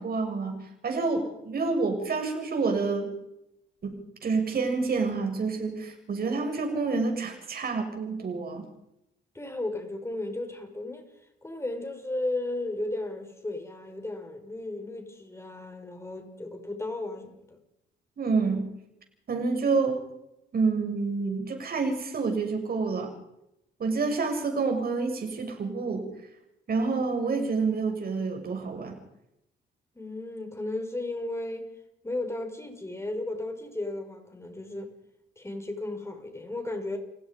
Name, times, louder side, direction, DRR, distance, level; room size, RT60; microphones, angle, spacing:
voice 1, 0.0-3.1 3.8-4.0 4.2-8.7 18.2-18.7 19.3-20.0 20.5-23.1 23.8-26.1 26.7-29.0, right 4 dB, 50° right, 6.9 m, -28 dB
voice 2, 9.3-11.1 11.4-17.6 23.8-24.0 29.9-31.7 32.0-34.9 35.4-37.0, left 2 dB, 15° left, 5.8 m, -34 dB
29.5 x 16.5 x 5.4 m
cardioid pair, 90°, 20 cm